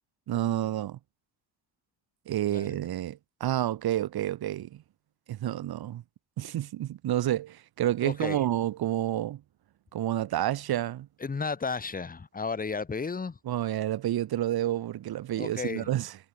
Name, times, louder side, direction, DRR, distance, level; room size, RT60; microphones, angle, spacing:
voice 1, 0.3-1.0 2.3-4.8 5.3-6.0 6.4-9.4 9.9-11.1 13.4-16.2, right 13 dB, 60° right, 4.9 m, -29 dB
voice 2, 8.0-8.4 11.2-13.4 15.4-15.9, left 4 dB, 20° left, 2.1 m, -33 dB
cardioid pair, 130°, 42 cm